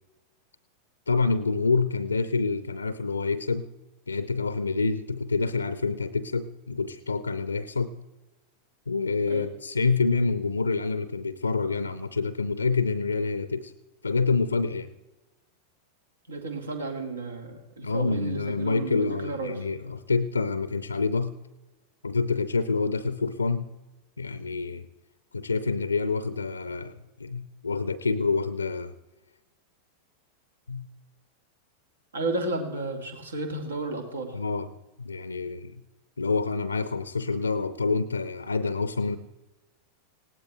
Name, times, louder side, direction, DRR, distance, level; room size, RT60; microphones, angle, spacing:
voice 1, 1.1-3.7 4.1-8.0 8.9-13.7 14.0-14.9 17.8-21.4 22.0-23.7 24.2-24.9 25.3-28.9 30.7-30.9 34.3-34.7 35.0-35.8 36.2-39.2, left 4 dB, 80° left, 15 dB, 0.6 m, -27 dB
voice 2, 16.3-19.6 32.1-34.4, right 2 dB, 70° right, 5 dB, 2.3 m, -32 dB
20.0 x 17.0 x 3.4 m, 1.1 s
figure-of-eight pair, 90°, 0 cm